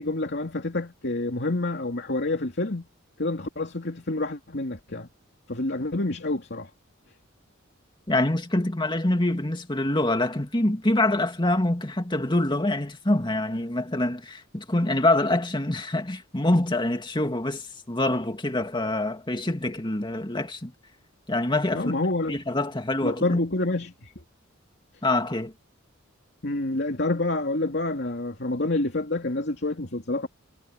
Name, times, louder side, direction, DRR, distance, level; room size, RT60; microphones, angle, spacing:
voice 1, 0.0-2.9 3.2-5.1 5.5-6.7 21.7-22.4 23.0-24.1 26.4-30.3, left 2 dB, 55° left, 2.9 m, -28 dB
voice 2, 8.1-20.7 21.3-21.9 22.3-23.4 25.0-25.5, left 1 dB, 25° left, 2.2 m, -25 dB
head